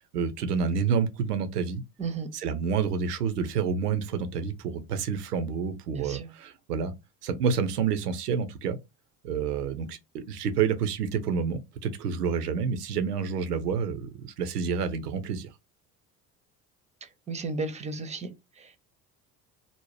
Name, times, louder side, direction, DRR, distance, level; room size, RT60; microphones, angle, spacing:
voice 1, 0.1-1.8 2.3-6.9 7.2-8.8 9.2-15.5, right 6 dB, 85° right, 0.6 m, -28 dB
voice 2, 5.9-6.3 17.0-18.3 18.6-18.8, right 3 dB, 15° right, 0.5 m, -34 dB
2.6 x 2.0 x 3.1 m
hypercardioid pair, 65°, 46 cm